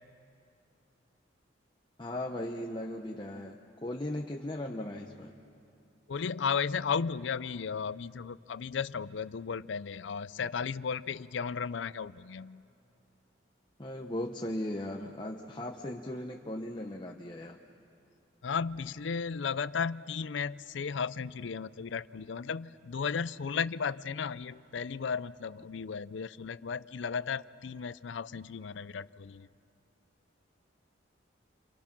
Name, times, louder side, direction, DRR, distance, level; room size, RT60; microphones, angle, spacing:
voice 1, 2.0-3.6 3.8-5.4 13.8-17.6, left 1 dB, 25° left, 1 dB, 0.8 m, -37 dB
voice 2, 6.1-12.6 18.4-29.5, left 6 dB, 75° left, 17 dB, 0.5 m, -35 dB
28.5 x 27.0 x 6.0 m, 2.6 s
head